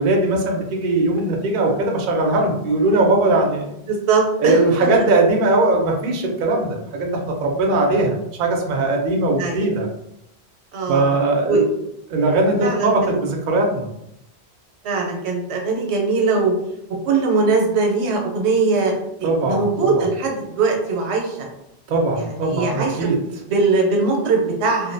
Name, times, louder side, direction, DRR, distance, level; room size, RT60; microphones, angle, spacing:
voice 1, 0.0-3.7 4.4-9.9 10.9-11.6 12.1-13.9 19.2-19.6 19.9-20.1 21.9-23.2, right 2 dB, 60° right, 1 dB, 0.6 m, -19 dB
voice 2, 3.9-5.0 9.4-9.7 10.7-11.2 11.4-11.7 12.6-13.2 14.8-16.5 17.1-18.9 19.2-21.5 22.2-23.1 23.5-24.9, right 4 dB, 85° right, 0 dB, 0.9 m, -21 dB
2.5 x 2.1 x 2.5 m, 0.81 s
omnidirectional pair, 1.1 m